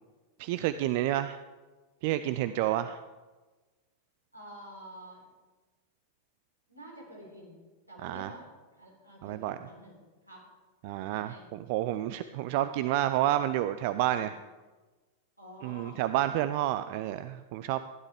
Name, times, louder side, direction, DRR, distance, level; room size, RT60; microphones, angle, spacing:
voice 1, 0.4-1.4 2.0-3.0 8.0-8.3 9.2-9.6 10.8-14.4 15.6-17.8, right 13 dB, 45° right, 12 dB, 0.4 m, -29 dB
voice 2, 2.4-2.9 4.3-5.2 6.7-7.6 7.9-10.0 10.3-10.5 11.1-11.5 14.1-14.3 15.4-16.0, equal, 85° right, -3 dB, 3.9 m, -49 dB
15.5 x 11.0 x 3.5 m, 1.2 s
figure-of-eight pair, 90°, 0 cm